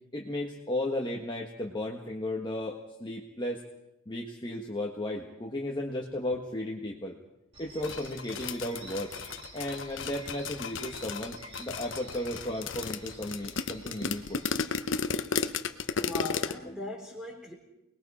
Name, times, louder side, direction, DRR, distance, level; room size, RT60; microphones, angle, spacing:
voice 1, 0.1-3.6 4.1-7.2 7.6-9.1 9.5-14.4, left 1 dB, 20° left, -1 dB, 1.5 m, -34 dB
sound 1, 7.5-14.5, right 2 dB, 25° right, 3.0 m, -50 dB
sound 2, 7.8-16.5, left 5 dB, 55° left, 0.9 m, -34 dB
voice 2, 16.0-17.5, left 2 dB, 5° right, 1 dB, 3.9 m, -39 dB
29.5 x 20.5 x 4.3 m, 0.92 s
head